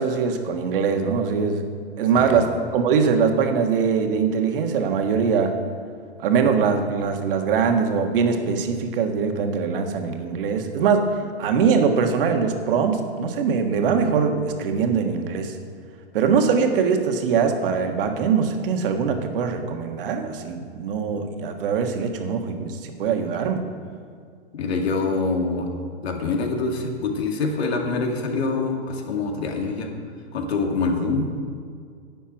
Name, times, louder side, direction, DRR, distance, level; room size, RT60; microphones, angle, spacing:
voice 1, 0.0-1.6 2.0-5.6 6.2-15.5 16.1-23.6, right 6 dB, 55° right, 5 dB, 1.6 m, -22 dB
voice 2, 24.5-25.7 26.0-29.9 30.3-31.4, left 3 dB, 65° left, 2 dB, 2.3 m, -25 dB
10.5 x 7.2 x 8.8 m, 2.2 s
hypercardioid pair, 145°, 34 cm